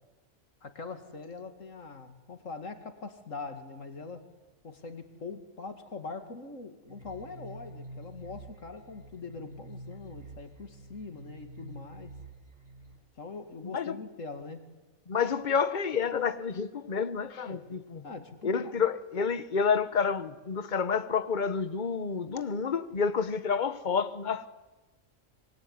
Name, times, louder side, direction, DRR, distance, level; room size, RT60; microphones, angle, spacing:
voice 1, 0.6-4.3 4.6-12.1 13.2-14.7 17.4-17.6 18.0-18.9, left 4 dB, 70° left, 2.7 m, -42 dB
sound 1, 6.9-13.0, right 2 dB, 30° right, 4.5 m, -48 dB
voice 2, 15.1-18.0 18.4-24.5, left 6 dB, 40° left, 1.2 m, -29 dB
25.5 x 24.0 x 9.7 m
omnidirectional pair, 1.4 m